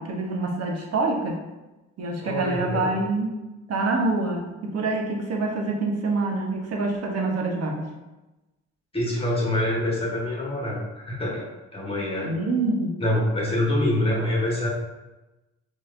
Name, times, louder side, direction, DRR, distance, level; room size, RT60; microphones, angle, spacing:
voice 1, 0.0-1.4 2.0-3.4 3.7-7.9 12.3-13.0, right 3 dB, 55° right, 1 dB, 0.9 m, -26 dB
voice 2, 2.2-3.0 8.9-12.4 13.0-14.7, left 1 dB, 20° left, -3 dB, 1.2 m, -25 dB
4.7 x 2.8 x 2.5 m, 1.0 s
cardioid pair, 90°, 30 cm